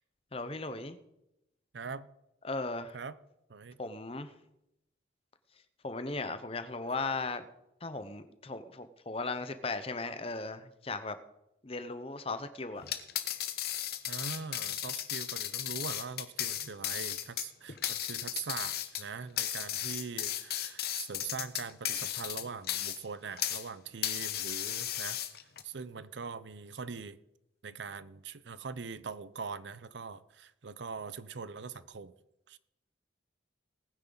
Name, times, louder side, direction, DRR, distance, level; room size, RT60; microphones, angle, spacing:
voice 1, 0.3-1.0 2.4-3.0 3.8-4.3 5.8-7.5 7.8-11.2 11.6-12.8, left 3 dB, 30° left, 0.8 m, -37 dB
voice 2, 1.7-2.1 2.9-3.2 3.5-3.8 14.1-25.2 25.6-27.2 27.6-32.1 32.5-32.6, right 5 dB, 70° right, 0.6 m, -42 dB
sound 1, 12.8-23.7 24.0-25.6, left 11 dB, 55° left, 0.9 m, -35 dB
19.0 x 9.5 x 4.0 m
head